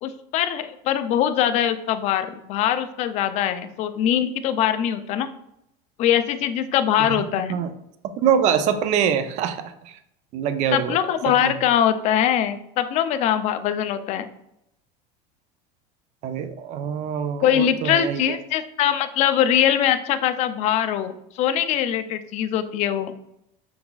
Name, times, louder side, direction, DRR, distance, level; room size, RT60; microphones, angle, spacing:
voice 1, 0.0-5.3 6.0-7.6 10.7-14.3 17.4-23.1, left 10 dB, 40° left, 10 dB, 0.4 m, -22 dB
voice 2, 8.2-10.0 10.3-11.0 11.3-11.5 16.2-18.4, right 8 dB, 40° right, 10 dB, 0.4 m, -24 dB
5.8 x 3.9 x 2.3 m, 0.80 s
cardioid pair, 150°, 17 cm